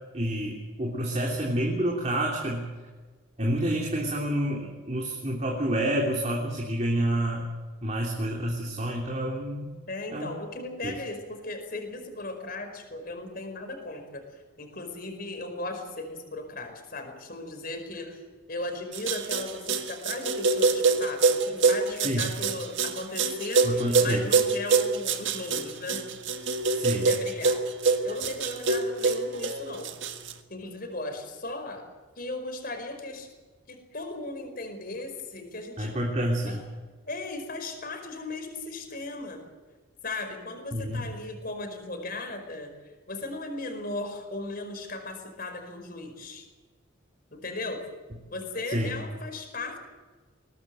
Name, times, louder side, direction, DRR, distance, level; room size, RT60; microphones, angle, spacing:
voice 1, 0.1-2.7 3.4-7.4 7.8-9.7 10.1-10.3 10.8-10.9 22.0-22.3 23.6-24.2 26.7-27.1 35.8-36.6 40.7-41.0 48.7-48.9, right 1 dB, 35° right, -1 dB, 3.2 m, -28 dB
voice 2, 9.9-18.2 18.5-26.1 26.9-27.6 28.0-29.9 30.5-31.8 32.2-33.3 33.7-35.9 36.5-36.6 37.1-39.4 40.0-42.7 43.1-46.5 47.3-47.8 48.3-49.8, left 2 dB, 45° left, 5 dB, 5.0 m, -37 dB
sound 1, 18.9-30.3, right 4 dB, 65° right, 1.7 m, -25 dB
22.5 x 18.5 x 7.9 m, 1.4 s
head